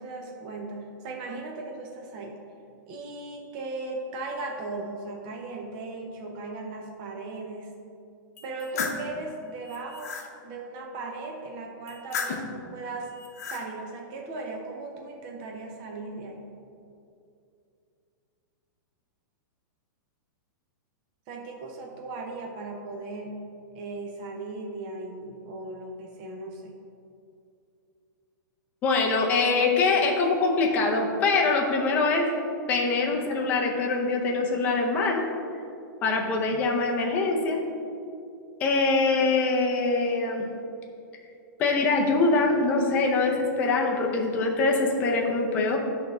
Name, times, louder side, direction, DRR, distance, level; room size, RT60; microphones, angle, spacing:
voice 1, 0.0-2.4 2.9-7.7 8.4-10.1 10.4-13.1 13.4-16.5 21.3-23.4 23.7-26.8, right 2 dB, 25° right, 0 dB, 0.7 m, -37 dB
sound 1, 8.4-9.1 9.6-10.3 11.9-12.6 13.1-13.6, left 5 dB, 45° left, 0.9 m, -33 dB
voice 2, 28.8-32.3 32.7-35.2 36.0-37.6 38.6-40.4 41.6-45.8, left 3 dB, 15° left, 0 dB, 0.6 m, -24 dB
10.5 x 3.5 x 5.4 m, 2.5 s
supercardioid pair, 180°, 11 cm